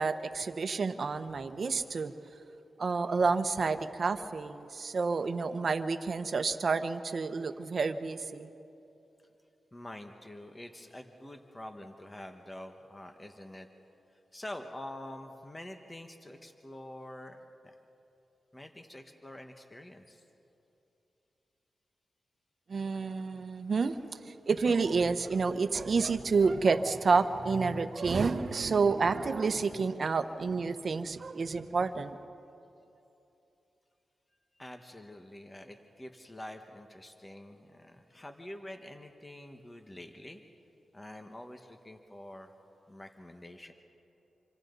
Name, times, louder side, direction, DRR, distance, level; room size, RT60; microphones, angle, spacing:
voice 1, 0.0-2.1 2.8-8.5 22.7-24.0 24.2-32.1, right 4 dB, 55° right, 10 dB, 1.0 m, -29 dB
voice 2, 9.7-13.7 14.3-17.7 18.5-20.2 34.6-40.4 40.9-42.5 42.9-43.7, left 1 dB, 20° left, 5 dB, 1.4 m, -46 dB
27.0 x 25.5 x 4.1 m, 2.8 s
cardioid pair, 70°, 0 cm